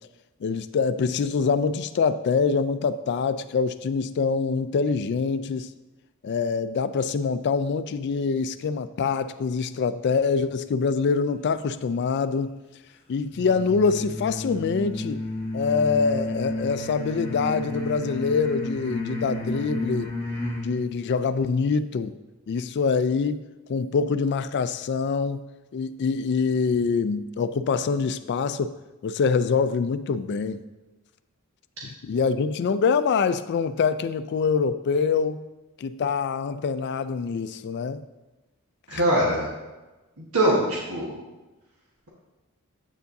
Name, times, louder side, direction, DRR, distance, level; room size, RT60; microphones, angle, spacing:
voice 1, 0.4-5.7 6.2-12.6 13.1-15.2 15.5-20.3 20.6-22.1 22.5-23.4 23.7-25.4 25.7-28.7 29.0-30.6 31.8-35.4 35.8-38.0 38.9-39.0, left 5 dB, 50° left, 0.3 m, -25 dB
sound 1, 13.3-20.7, left 1 dB, 25° left, 1.3 m, -32 dB
voice 2, 38.9-39.5 40.2-41.1, right 1 dB, 80° right, 1.3 m, -22 dB
8.0 x 7.0 x 2.7 m
head